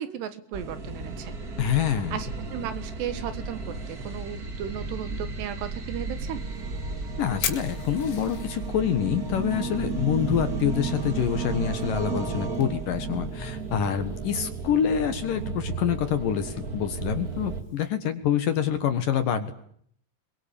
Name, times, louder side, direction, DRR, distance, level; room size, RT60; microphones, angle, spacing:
voice 1, 0.0-1.3 1.8-6.5, right 9 dB, 75° right, 12 dB, 3.5 m, -35 dB
sound 1, 0.5-17.6, right 4 dB, 40° right, 1.3 m, -33 dB
voice 2, 1.6-2.2 7.2-19.5, left 9 dB, 60° left, 9 dB, 2.7 m, -26 dB
Fire, 6.4-17.9, left 8 dB, 85° left, 4.8 m, -43 dB
25.5 x 22.5 x 8.8 m, 0.66 s
omnidirectional pair, 5.1 m